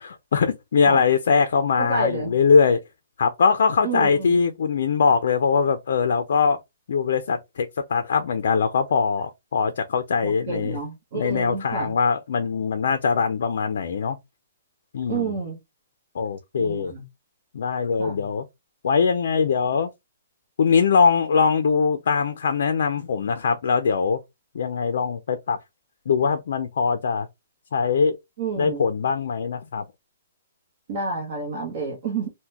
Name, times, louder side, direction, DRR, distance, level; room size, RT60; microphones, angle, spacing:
voice 1, 0.0-2.8 3.2-6.6 6.9-10.8 11.1-14.2 14.9-15.3 16.1-16.9 17.5-18.4 18.8-19.9 20.6-24.2 24.5-25.6 26.1-27.3 27.7-28.2 28.6-29.8, left 5 dB, 55° left, 0.5 m, -22 dB
voice 2, 1.8-2.4 3.8-4.4 10.2-11.9 15.1-15.6 16.6-17.1 18.0-18.3 28.4-28.9 30.9-32.3, right 4 dB, 35° right, 1.0 m, -29 dB
3.7 x 2.2 x 2.8 m
hypercardioid pair, 180°, 0 cm